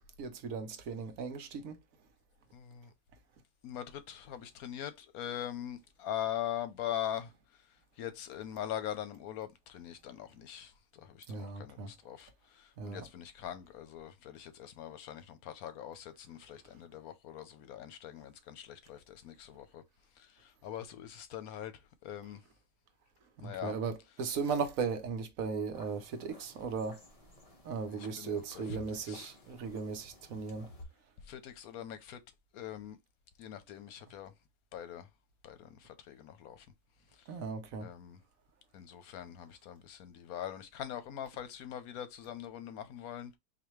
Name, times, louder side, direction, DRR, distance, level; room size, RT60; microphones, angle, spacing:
voice 1, 0.2-1.8 11.3-11.9 12.8-13.0 23.4-27.0 27.6-30.7 37.3-37.9, right 5 dB, 70° right, 1.2 m, -37 dB
voice 2, 2.5-2.9 3.6-7.3 8.0-19.8 20.2-21.7 22.0-22.4 23.4-23.7 27.9-29.3 31.3-32.2 32.5-33.0 33.4-34.3 34.7-35.1 35.4-36.7 37.8-38.2 38.7-43.4, left 10 dB, 85° left, 1.2 m, -42 dB
sound 1, 25.7-30.8, left 1 dB, 25° left, 1.0 m, -52 dB
4.2 x 2.7 x 3.1 m
omnidirectional pair, 1.5 m